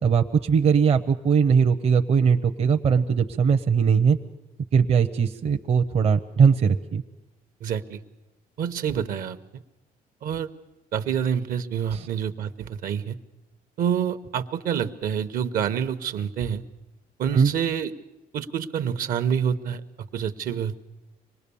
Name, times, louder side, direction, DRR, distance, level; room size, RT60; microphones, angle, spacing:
voice 1, 0.0-4.2 4.7-7.0 11.9-12.1 17.3-17.5, right 6 dB, 40° right, 6 dB, 0.7 m, -20 dB
voice 2, 7.6-8.0 8.6-9.6 10.2-10.5 10.9-13.1 13.8-16.6 17.2-17.9 18.3-19.8 20.1-20.8, right 8 dB, 70° right, 10 dB, 1.0 m, -27 dB
25.5 x 19.5 x 7.0 m, 1.0 s
cardioid pair, 135°, 15 cm